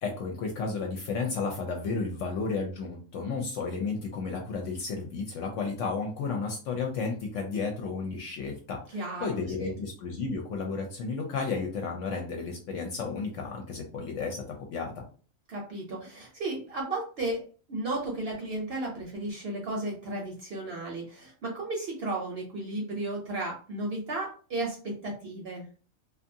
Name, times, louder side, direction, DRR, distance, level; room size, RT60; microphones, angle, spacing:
voice 1, 0.0-14.4 14.7-15.0, left 4 dB, 70° left, 2 dB, 0.9 m, -33 dB
voice 2, 8.9-9.8 15.5-17.4 17.7-25.6, right 2 dB, 60° right, -1 dB, 0.8 m, -34 dB
2.6 x 2.3 x 2.6 m, 0.38 s
omnidirectional pair, 1.4 m